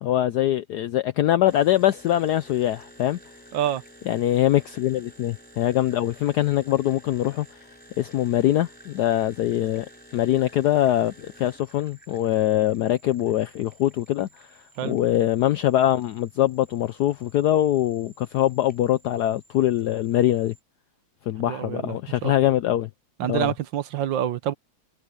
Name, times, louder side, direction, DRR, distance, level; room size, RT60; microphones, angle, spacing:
voice 1, 0.0-3.2 4.1-7.5 8.0-9.9 10.1-14.5 14.8-20.5 21.3-22.9 23.3-23.5, left 13 dB, 80° left, 0.9 m, -23 dB
sound 1, 1.5-20.6, equal, 5° left, 3.6 m, -52 dB
voice 2, 21.4-22.0 22.2-22.5 23.2-24.5, right 11 dB, 70° right, 1.4 m, -27 dB
omnidirectional pair, 2.3 m